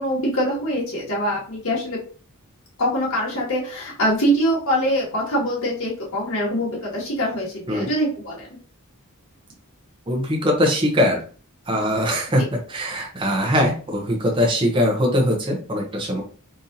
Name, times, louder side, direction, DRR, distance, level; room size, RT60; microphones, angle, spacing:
voice 1, 0.0-2.0 2.8-8.5 12.3-12.5, equal, 75° left, -5 dB, 1.8 m, -23 dB
voice 2, 10.1-11.2 11.7-12.4 12.7-16.2, equal, 20° right, -1 dB, 0.7 m, -21 dB
3.8 x 2.7 x 2.7 m, 0.39 s
head